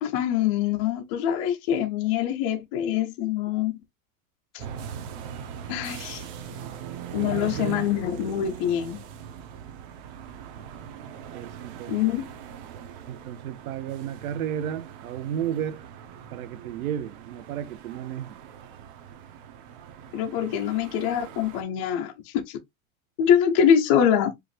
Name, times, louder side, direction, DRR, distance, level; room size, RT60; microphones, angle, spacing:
voice 1, 0.0-3.8 4.5-4.6 5.7-6.2 7.1-9.0 11.9-12.3 20.1-22.6 23.2-24.3, left 9 dB, 25° left, 0.4 m, -24 dB
sound 1, 4.6-21.6, right 8 dB, 40° right, 0.9 m, -41 dB
voice 2, 7.2-7.9 11.3-12.0 13.1-15.8 16.3-18.4, right 9 dB, 80° right, 0.8 m, -33 dB
4.9 x 2.5 x 3.1 m
supercardioid pair, 160°, 42 cm